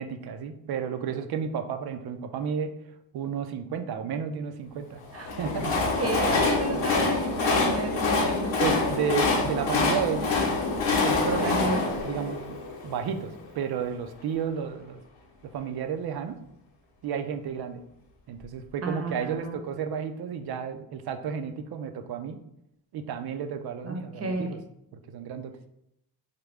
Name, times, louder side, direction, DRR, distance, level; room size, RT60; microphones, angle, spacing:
voice 1, 0.0-2.7 3.1-5.0 5.4-5.8 6.7-6.8 8.6-10.3 11.0-12.6 12.8-15.0 15.5-16.4 17.0-17.8 18.3-22.4 22.9-24.6 24.9-25.5, right 7 dB, 60° right, 7 dB, 0.6 m, -32 dB
Train, 5.1-13.2, left 3 dB, 90° left, 1.0 m, -26 dB
voice 2, 6.0-8.5 11.4-11.8 18.8-19.6 23.8-24.5, right 2 dB, 35° right, 3 dB, 0.8 m, -32 dB
5.0 x 2.2 x 3.3 m, 0.80 s
cardioid pair, 75°, 44 cm